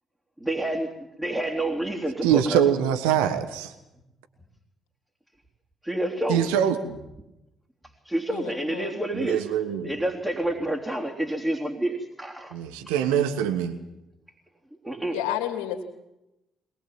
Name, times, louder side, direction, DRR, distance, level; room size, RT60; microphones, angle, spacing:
voice 1, 0.4-0.9 1.2-2.6 5.8-6.5 8.0-9.5 9.8-12.6 14.8-15.2, right 1 dB, 10° right, 0 dB, 3.3 m, -28 dB
voice 2, 2.2-3.7 6.3-7.0 9.1-9.9 12.5-13.8, right 9 dB, 75° right, 8 dB, 1.4 m, -24 dB
voice 3, 8.3-9.0 15.1-15.8, left 10 dB, 75° left, 4 dB, 2.9 m, -31 dB
22.0 x 20.0 x 7.5 m, 0.90 s
figure-of-eight pair, 45°, 0 cm